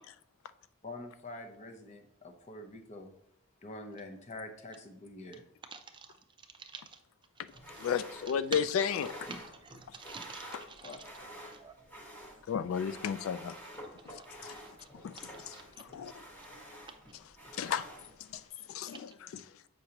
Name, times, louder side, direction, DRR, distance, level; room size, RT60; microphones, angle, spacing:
voice 1, 0.8-3.1 3.6-5.4 10.8-11.0, left 2 dB, 35° left, 0.7 m, -46 dB
voice 2, 5.7-6.1 6.7-7.0 7.7-7.9 8.5-8.6 9.3-11.0 11.6-11.7 14.6-14.9 15.5-15.6, right 4 dB, 20° right, 0.5 m, -46 dB
sound 1, 7.5-18.5, equal, 10° left, 1.2 m, -49 dB
voice 3, 7.8-9.3 12.5-13.5 14.4-14.5 15.0-15.1 17.6-17.9 18.3-18.4 18.7-19.4, left 8 dB, 75° left, 0.3 m, -32 dB
8.0 x 5.3 x 2.9 m
head